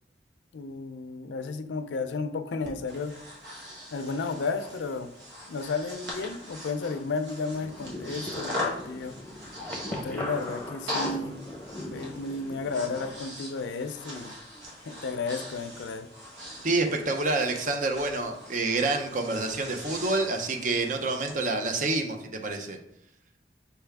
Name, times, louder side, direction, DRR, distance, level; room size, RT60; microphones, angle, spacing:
voice 1, 0.5-3.1 3.9-5.1 5.5-9.1 10.0-11.4 11.9-14.4 14.8-16.1, left 4 dB, 90° left, 9 dB, 0.4 m, -33 dB
Breathing, 2.6-21.4, left 1 dB, 85° right, 1.4 m, -40 dB
sound 1, 7.5-13.2, left 1 dB, 10° left, 0.7 m, -40 dB
voice 2, 16.6-22.8, right 2 dB, 45° right, 4 dB, 0.5 m, -28 dB
4.5 x 3.4 x 3.4 m, 0.79 s
head